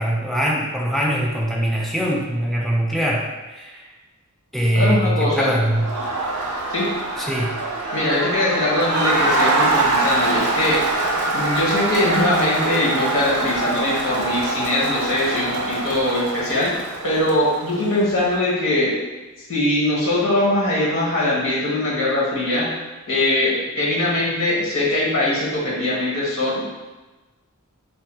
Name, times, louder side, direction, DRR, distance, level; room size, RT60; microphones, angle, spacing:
voice 1, 0.0-3.8 4.5-5.9 7.2-7.6, equal, ahead, -2 dB, 0.4 m, -22 dB
voice 2, 4.7-5.5 6.7-6.9 7.9-10.9 11.3-16.7 17.0-18.9 19.5-22.7 23.1-26.6, left 1 dB, 60° left, -5 dB, 1.2 m, -21 dB
Crowd, 5.6-18.1, right 2 dB, 75° right, 0.7 m, -24 dB
3.3 x 2.2 x 4.3 m, 1.2 s
head